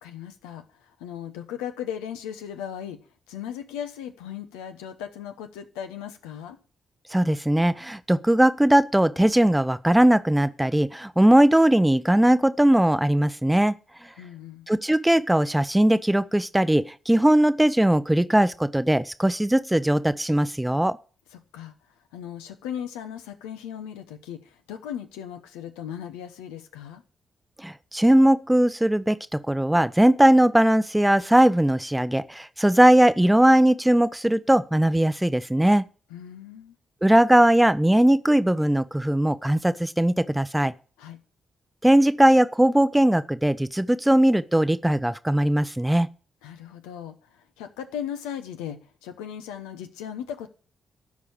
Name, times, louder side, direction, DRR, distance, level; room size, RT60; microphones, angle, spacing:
voice 1, 0.0-3.0 3.3-6.6 14.2-14.7 21.3-21.7 22.1-27.0 36.1-36.8 41.0-41.2 46.4-50.5, left 9 dB, 85° left, 0.9 m, -37 dB
voice 2, 7.1-13.7 14.7-21.0 27.6-35.8 37.0-40.7 41.8-46.1, right 1 dB, 10° right, 0.6 m, -19 dB
12.5 x 4.8 x 8.6 m
hypercardioid pair, 45°, 0 cm